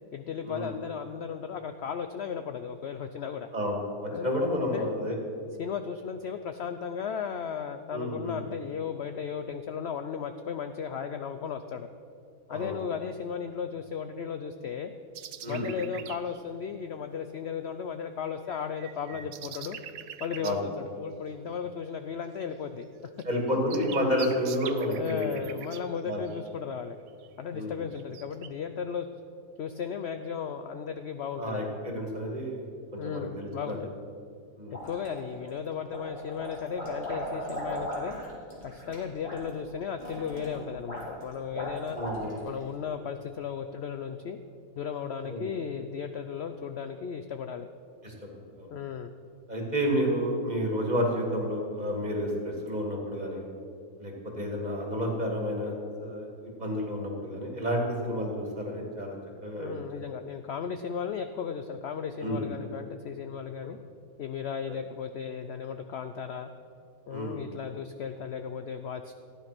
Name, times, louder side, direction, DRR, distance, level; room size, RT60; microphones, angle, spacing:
voice 1, 0.1-3.5 4.1-4.3 4.6-4.9 5.6-11.9 12.5-14.9 15.5-19.8 20.2-22.9 23.1-23.2 24.9-27.0 27.4-29.1 29.6-31.7 33.0-34.0 34.7-38.2 38.6-42.0 42.4-44.4 44.8-47.7 48.7-49.1 59.6-63.8 64.2-66.5 67.1-69.1, left 7 dB, 70° left, 8 dB, 0.6 m, -35 dB
voice 2, 3.5-5.2 7.9-8.5 12.5-12.8 15.4-15.7 20.4-20.6 23.2-25.4 26.0-26.2 27.5-27.7 31.4-32.6 32.9-33.8 34.6-34.8 42.0-42.4 45.3-45.5 48.0-48.1 48.6-48.7 49.5-53.4 54.0-55.7 56.0-59.2 59.4-59.8 62.2-62.5 64.7-64.8 67.1-67.5, equal, 25° right, -1 dB, 2.4 m, -30 dB
sound 1, 15.1-16.4 18.5-20.6 22.8-22.9 23.2-26.5 27.1-27.3 27.9-28.5, right 10 dB, 65° right, 1.0 m, -43 dB
sound 2, 34.7-35.5 35.9-42.6, equal, 40° left, 3.7 m, -37 dB
14.5 x 10.0 x 6.0 m, 2.4 s
omnidirectional pair, 1.7 m